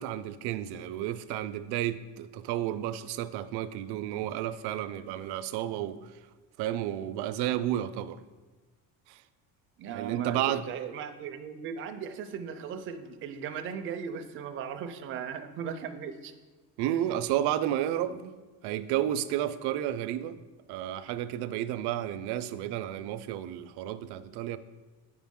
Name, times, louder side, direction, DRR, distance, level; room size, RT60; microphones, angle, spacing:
voice 1, 0.0-6.1 6.6-8.2 9.1-9.2 9.9-10.6 16.8-18.4 18.6-20.4 20.7-24.6, right 12 dB, 80° right, 0.5 m, -32 dB
voice 2, 9.8-16.3, right 7 dB, 35° right, 0.4 m, -37 dB
9.4 x 5.1 x 3.6 m
cardioid pair, 175°, 39 cm